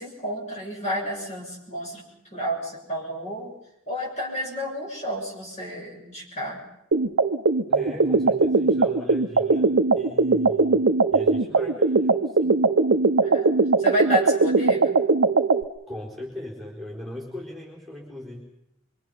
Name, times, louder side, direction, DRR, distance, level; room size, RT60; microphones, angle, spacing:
voice 1, 0.0-2.0 2.3-3.5 3.9-6.6 13.2-13.5 13.8-15.0, equal, 35° left, -2 dB, 6.7 m, -30 dB
sound 1, 6.9-15.6, right 3 dB, 65° right, 0.8 m, -20 dB
voice 2, 7.7-12.7 15.9-18.4, left 1 dB, ahead, -3 dB, 4.8 m, -39 dB
25.5 x 24.5 x 5.8 m, 0.81 s
head